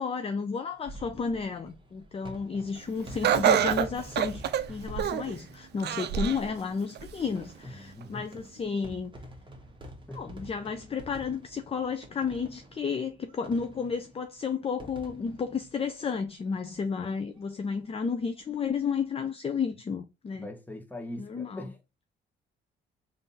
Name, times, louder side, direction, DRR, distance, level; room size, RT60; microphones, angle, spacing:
voice 1, 0.0-4.4 4.7-9.1 10.1-20.5 21.2-21.7, left 5 dB, 30° left, 0.5 m, -32 dB
sound 1, 0.7-16.8 17.1-17.2 17.4-17.5 18.7-19.0, right 1 dB, 25° right, 1.4 m, -48 dB
Laughter, 3.2-5.3 5.8-6.5 6.9-7.0 8.0-8.1, right 9 dB, 60° right, 0.5 m, -26 dB
voice 2, 7.6-8.3 10.1-10.5 20.3-21.8, left 1 dB, 10° left, 1.2 m, -42 dB
3.6 x 2.7 x 4.0 m
cardioid pair, 90°, 20 cm